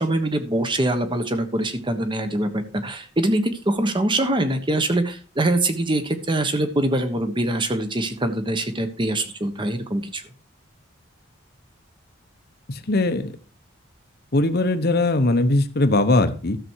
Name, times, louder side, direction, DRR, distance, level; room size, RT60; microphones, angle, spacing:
voice 1, 0.0-10.2, right 1 dB, 25° right, 9 dB, 1.2 m, -23 dB
voice 2, 12.7-13.3 14.3-16.6, left 2 dB, 50° left, 9 dB, 1.0 m, -20 dB
13.0 x 7.0 x 4.7 m, 0.37 s
head